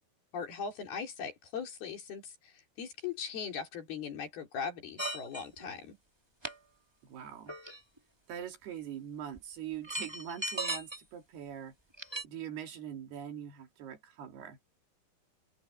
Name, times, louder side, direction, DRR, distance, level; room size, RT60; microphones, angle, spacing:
voice 1, 0.3-6.0, left 6 dB, 70° left, 5.7 m, -40 dB
sound 1, 5.0-5.6 6.4-6.5 7.5-8.0 9.4-9.5 9.8-11.0 11.9-12.2, right 1 dB, 10° right, 2.1 m, -37 dB
voice 2, 7.0-7.6 8.3-11.7 12.2-14.6, right 9 dB, 75° right, 4.6 m, -43 dB
open air
omnidirectional pair, 4.7 m